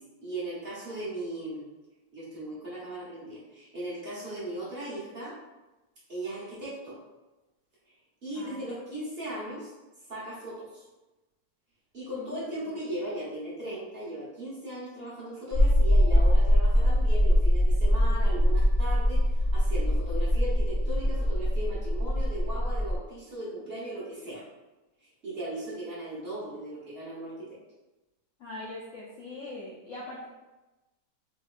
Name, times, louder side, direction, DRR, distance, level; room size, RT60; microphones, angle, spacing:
voice 1, 0.0-1.6 2.1-5.4 6.1-7.0 8.2-9.7 10.1-10.8 11.9-24.4 25.0-27.6, right 1 dB, 45° right, -8 dB, 0.9 m, -38 dB
sound 1, 15.5-23.0, equal, 25° right, 1.4 m, -23 dB
voice 2, 28.4-30.3, left 2 dB, 80° left, -6 dB, 0.7 m, -41 dB
3.3 x 3.0 x 2.4 m, 1.1 s
omnidirectional pair, 2.0 m